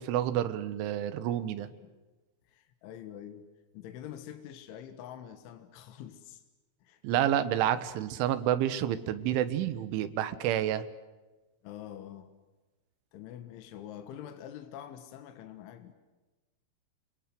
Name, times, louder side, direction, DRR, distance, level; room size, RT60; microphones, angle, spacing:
voice 1, 0.0-1.7 7.0-10.9, right 11 dB, 75° right, 11 dB, 3.6 m, -29 dB
voice 2, 2.5-3.5 3.7-6.4 6.8-7.0 11.6-12.3 13.1-15.9, left 10 dB, 70° left, 7 dB, 3.7 m, -45 dB
30.0 x 24.0 x 7.8 m, 1.2 s
omnidirectional pair, 5.9 m